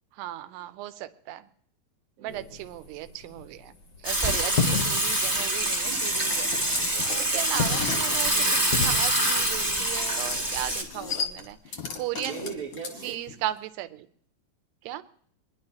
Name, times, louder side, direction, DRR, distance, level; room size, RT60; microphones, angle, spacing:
voice 1, 0.2-1.4 2.2-3.7 4.0-6.5 7.3-11.6 12.0-12.5 13.0-13.9 14.9-15.0, right 14 dB, 85° right, 13 dB, 2.7 m, -36 dB
voice 2, 2.2-2.6 6.7-7.7 12.1-13.2, right 6 dB, 60° right, -6 dB, 1.4 m, -40 dB
sound 1, 2.3-11.5, left 5 dB, 80° left, 0.9 m, -35 dB
Water / Water tap faucet / Sink (filling or washing), 4.0-10.8, right 1 dB, 15° right, 0.7 m, -25 dB
sound 2, 6.4-9.6 10.0-10.4 10.7-13.3, left 5 dB, 60° left, 1.2 m, -36 dB
26.0 x 10.5 x 2.9 m, 0.63 s
omnidirectional pair, 4.8 m